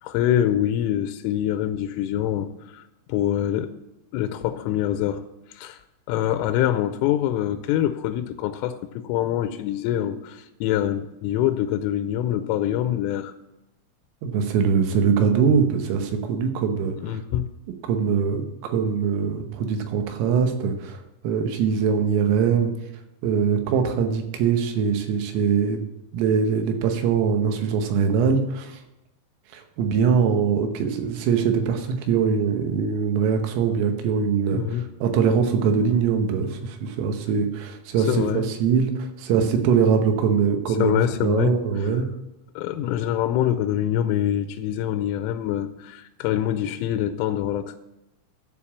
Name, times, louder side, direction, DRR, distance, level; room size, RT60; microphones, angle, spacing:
voice 1, 0.0-3.7 4.1-5.2 5.5-13.3 17.0-17.5 34.5-34.9 38.0-38.5 40.7-42.0 42.6-47.8, left 11 dB, 90° left, 8 dB, 3.2 m, -25 dB
voice 2, 14.2-17.0 17.9-22.7 23.2-25.8 26.1-28.8 29.5-34.6 35.0-40.9 41.2-42.1, right 6 dB, 85° right, 6 dB, 3.7 m, -22 dB
12.5 x 4.9 x 7.2 m, 0.94 s
omnidirectional pair, 5.8 m